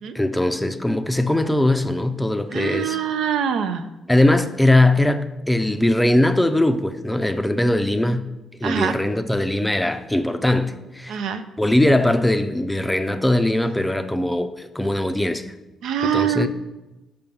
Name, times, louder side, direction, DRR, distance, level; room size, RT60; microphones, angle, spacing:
voice 1, 0.1-3.0 4.1-8.3 8.6-11.2 11.6-15.4 16.0-16.5, left 1 dB, 5° left, 0.5 m, -20 dB
voice 2, 2.5-3.8 8.6-9.0 11.1-11.4 15.8-16.5, right 7 dB, 80° right, 0.5 m, -24 dB
5.6 x 5.3 x 5.3 m
cardioid pair, 90°, 0 cm